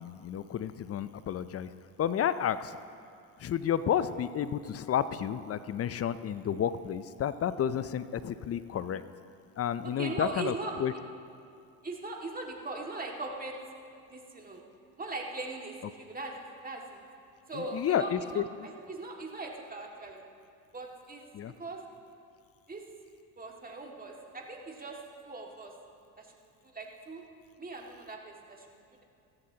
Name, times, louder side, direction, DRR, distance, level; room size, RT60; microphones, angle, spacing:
voice 1, 0.0-1.7 2.0-2.8 3.4-9.0 9.6-10.5 10.8-10.9 17.5-18.4 21.3-21.5, left 9 dB, 35° left, 14 dB, 0.5 m, -31 dB
voice 2, 9.8-10.7 11.8-13.6 14.1-14.6 15.0-16.4 16.6-17.0 17.5-20.3 20.7-21.3 21.6-21.8 22.7-22.8 23.4-25.0 25.2-25.7 26.2-26.4 26.6-27.2 27.6-28.7, right 3 dB, 20° right, 0 dB, 2.1 m, -40 dB
15.0 x 14.5 x 2.9 m, 2.4 s
hypercardioid pair, 70°, 43 cm